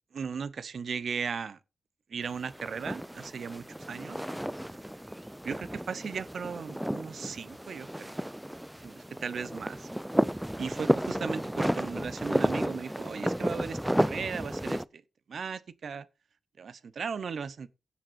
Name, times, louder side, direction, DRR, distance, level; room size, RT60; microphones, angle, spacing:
voice 1, 0.1-1.6 2.1-4.2 5.4-8.2 8.8-9.9 10.6-15.0 15.3-16.1 16.6-17.7, right 6 dB, 65° right, 0.9 m, -37 dB
sound 1, 2.3-14.8, equal, 5° right, 0.4 m, -32 dB
17.0 x 7.3 x 2.6 m
cardioid pair, 70°, 0 cm